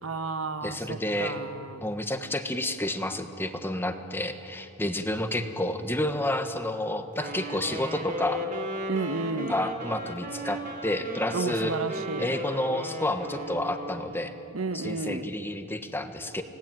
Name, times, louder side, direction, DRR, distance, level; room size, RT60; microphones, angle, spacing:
voice 1, 0.0-1.8 8.9-9.6 11.3-12.4 14.5-15.3, right 3 dB, 75° right, 9 dB, 1.2 m, -32 dB
voice 2, 0.6-1.4 1.8-8.4 9.5-11.7 12.2-14.3 14.7-16.4, left 1 dB, 10° left, 7 dB, 1.4 m, -30 dB
Wind instrument woodwind instrument, 7.1-14.4, right 1 dB, 40° right, 3.2 m, -36 dB
30.0 x 18.5 x 9.1 m, 2.8 s
head